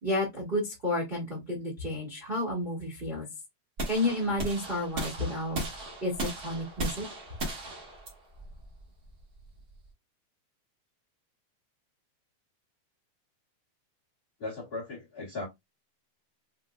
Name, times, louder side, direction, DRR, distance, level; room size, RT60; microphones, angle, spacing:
voice 1, 0.0-3.3 3.9-5.6 6.0-7.0, left 1 dB, 50° right, 0.6 m, -31 dB
sound 1, 3.8-9.9, right 1 dB, 70° right, 0.9 m, -37 dB
voice 2, 14.4-15.5, left 3 dB, 65° left, 0.9 m, -37 dB
5.6 x 2.1 x 2.3 m
omnidirectional pair, 3.7 m